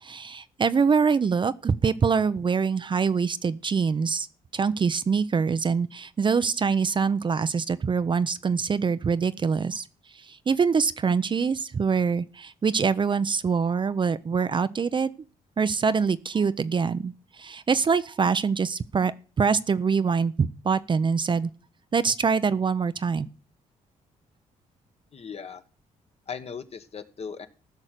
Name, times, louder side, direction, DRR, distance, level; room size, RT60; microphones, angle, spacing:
voice 1, 0.0-4.3 4.5-9.9 10.1-15.1 15.6-19.1 19.4-21.5 21.9-23.3, right 5 dB, 35° right, 0.6 m, -24 dB
voice 2, 25.1-25.6 26.3-27.5, left 6 dB, 45° left, 1.3 m, -38 dB
15.0 x 6.1 x 6.7 m
cardioid pair, 90°, 14 cm